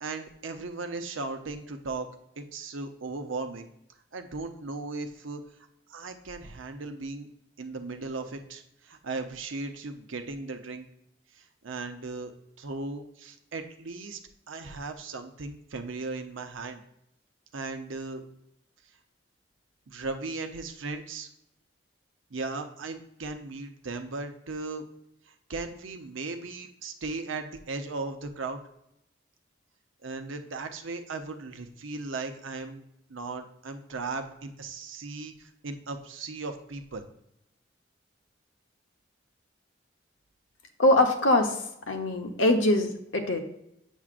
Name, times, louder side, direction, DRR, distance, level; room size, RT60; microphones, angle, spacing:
voice 1, 0.0-2.1 2.4-3.7 4.1-5.4 5.9-7.3 7.6-10.9 11.3-12.3 12.6-14.2 14.5-16.8 17.5-18.2 19.9-21.3 22.3-24.9 25.5-28.6 30.0-32.8 33.1-37.0, right 3 dB, 85° right, 6 dB, 0.7 m, -37 dB
voice 2, 40.8-41.6 41.9-43.4, left 1 dB, 85° left, 5 dB, 1.0 m, -23 dB
7.3 x 7.1 x 2.5 m, 0.80 s
head